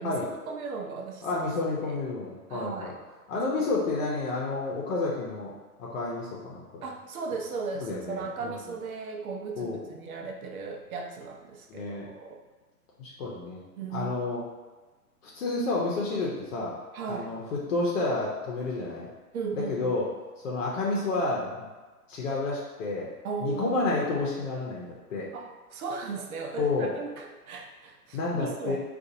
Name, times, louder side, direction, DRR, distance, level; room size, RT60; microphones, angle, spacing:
voice 1, 0.5-1.4 1.8-2.0 2.5-3.0 3.6-3.7 6.8-12.4 13.8-14.1 16.9-17.4 19.3-19.9 23.2-23.8 25.3-28.8, right 5 dB, 65° right, 2 dB, 0.7 m, -36 dB
voice 2, 1.2-2.9 3.3-5.5 5.8-6.6 7.7-8.6 9.5-9.9 11.7-12.0 13.0-13.6 13.9-14.4 15.2-16.7 17.1-19.1 19.5-20.1 20.4-21.7 22.1-23.1 23.4-25.3 26.6-26.9 28.1-28.8, left 3 dB, 55° left, -4 dB, 0.8 m, -30 dB
3.8 x 2.5 x 2.7 m, 1.3 s
hypercardioid pair, 125°, 46 cm